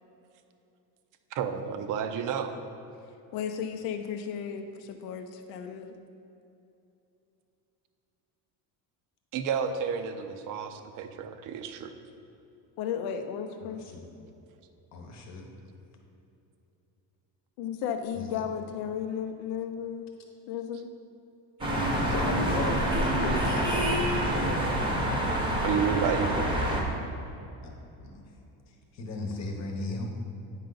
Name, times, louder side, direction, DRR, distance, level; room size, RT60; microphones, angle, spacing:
voice 1, 1.3-2.5 9.3-11.9 25.6-26.5, right 7 dB, 50° right, 8 dB, 0.6 m, -31 dB
voice 2, 3.3-5.9 12.8-13.8 17.6-20.0 20.5-20.9, left 8 dB, 65° left, 6 dB, 0.6 m, -34 dB
voice 3, 13.6-14.0 14.9-15.5 18.1-18.3 22.0-23.9 24.2-24.8 27.6-27.7 28.0-28.2 28.9-30.1, left 2 dB, 40° left, 3 dB, 1.0 m, -35 dB
sound 1, 21.6-26.8, right 1 dB, 10° right, 0.8 m, -27 dB
9.1 x 5.6 x 3.9 m, 2.9 s
cardioid pair, 165°, 41 cm